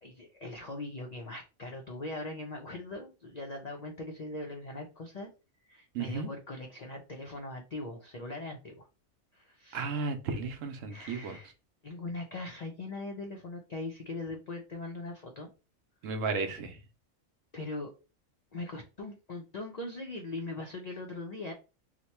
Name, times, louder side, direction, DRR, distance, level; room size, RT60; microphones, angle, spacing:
voice 1, 0.0-5.3 5.7-8.9 9.3-9.8 10.9-11.5 11.8-15.5 17.5-17.9 18.5-21.5, left 2 dB, 65° left, 0.4 m, -40 dB
voice 2, 5.9-6.3 9.7-11.4 16.0-16.8, right 4 dB, 70° right, 1.0 m, -34 dB
2.9 x 2.1 x 4.1 m
omnidirectional pair, 1.4 m